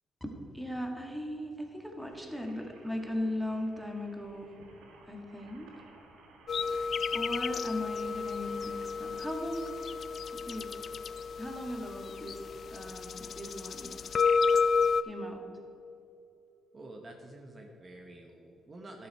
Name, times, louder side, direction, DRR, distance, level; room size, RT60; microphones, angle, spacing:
voice 1, 0.2-4.6 5.1-5.8 7.1-9.8 10.3-10.7 11.4-12.4 12.7-14.0 15.0-15.4, left 1 dB, ahead, 2 dB, 1.5 m, -38 dB
sound 1, 2.0-13.1 13.7-13.8 14.0-14.1, right 3 dB, 85° right, 1.5 m, -58 dB
sound 2, 6.5-15.0, left 5 dB, 55° left, 0.4 m, -31 dB
voice 2, 16.7-19.1, right 1 dB, 35° right, 2 dB, 1.0 m, -48 dB
12.0 x 7.1 x 4.6 m, 2.9 s
cardioid pair, 90°, 0 cm